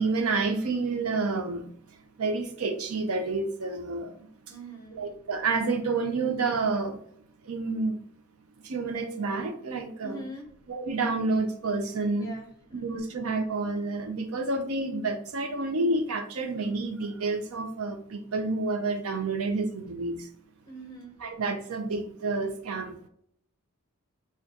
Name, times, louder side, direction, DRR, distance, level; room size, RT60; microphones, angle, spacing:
voice 1, 0.0-1.7 2.2-4.3 4.9-7.0 7.4-8.0 8.6-10.2 10.7-12.3 12.8-20.3 21.2-23.0, right 3 dB, 75° right, 7 dB, 0.6 m, -29 dB
voice 2, 4.5-5.0 10.0-10.4 12.1-13.1 20.6-21.2, right 1 dB, 15° left, 1 dB, 0.8 m, -43 dB
4.3 x 2.4 x 2.8 m, 0.67 s
head